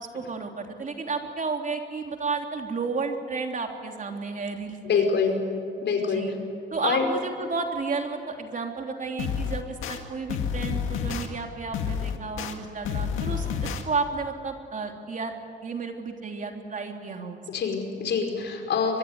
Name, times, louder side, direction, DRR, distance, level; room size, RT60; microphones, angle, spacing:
voice 1, 0.0-5.4 6.0-6.3 6.7-15.3 15.6-17.4, right 4 dB, 40° right, 3 dB, 3.4 m, -32 dB
voice 2, 4.8-5.4 5.8-6.3 6.8-7.1 17.5-19.0, left 5 dB, 65° left, 4 dB, 5.2 m, -25 dB
sound 1, 9.2-10.0 10.3-11.3 11.7-12.5 12.8-13.8, left 7 dB, 90° left, 2.0 m, -29 dB
24.0 x 22.0 x 9.7 m, 2.4 s
cardioid pair, 90°, 20 cm